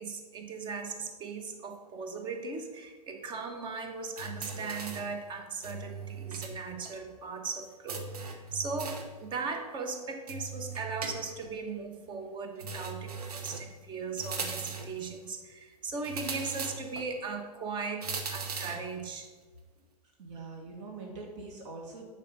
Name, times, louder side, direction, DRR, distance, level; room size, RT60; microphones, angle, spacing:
voice 1, 0.0-19.3, right 4 dB, 25° right, 4 dB, 1.1 m, -38 dB
sound 1, 4.2-5.2 5.6-6.6 6.8-6.9 7.9-9.2 10.3-11.5 12.6-13.7 14.2-15.0 16.0-17.1 18.0-18.9, right 4 dB, 70° right, 1.1 m, -39 dB
voice 2, 20.2-22.1, right 3 dB, 45° right, -1 dB, 1.9 m, -43 dB
10.0 x 4.2 x 5.5 m, 1.3 s
figure-of-eight pair, 100°, 20 cm